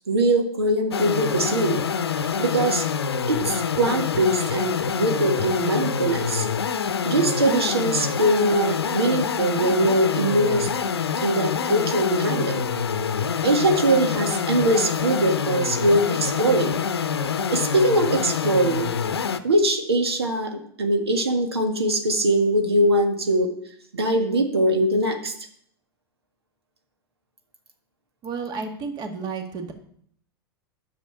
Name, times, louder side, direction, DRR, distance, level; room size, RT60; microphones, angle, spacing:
voice 1, 0.1-1.8 2.4-2.8 3.3-6.4 7.0-10.7 11.2-12.6 13.4-16.8 17.5-18.9 19.4-23.5 23.9-25.3, right 1 dB, 80° right, 4 dB, 1.7 m, -22 dB
sound 1, 0.9-19.4, left 6 dB, 80° left, 0.7 m, -26 dB
voice 2, 28.2-29.7, right 5 dB, 35° right, 5 dB, 1.9 m, -31 dB
10.0 x 6.8 x 6.8 m, 0.62 s
figure-of-eight pair, 90°, 13 cm